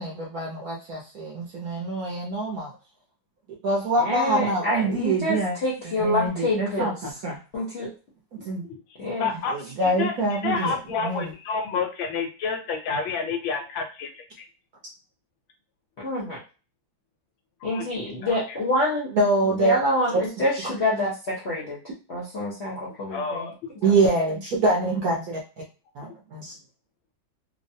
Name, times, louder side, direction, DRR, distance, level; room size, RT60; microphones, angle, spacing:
voice 1, 0.0-2.7 3.6-5.5 6.0-7.4 8.3-8.6 9.5-11.3 19.2-19.8 23.8-25.4 25.9-26.5, right 2 dB, 65° right, -2 dB, 0.9 m, -25 dB
voice 2, 4.0-7.0 7.5-7.9 9.0-9.3 16.0-16.4 17.6-19.1 19.4-21.8 22.1-23.5 23.8-24.0, left 1 dB, 60° left, -6 dB, 0.7 m, -27 dB
voice 3, 9.2-9.5 9.8-10.1 10.4-14.1 14.4-14.5 17.7-17.9 18.2-18.3 23.1-23.5, left 5 dB, 75° left, 5 dB, 1.3 m, -29 dB
3.3 x 2.0 x 2.6 m, 0.34 s
omnidirectional pair, 2.2 m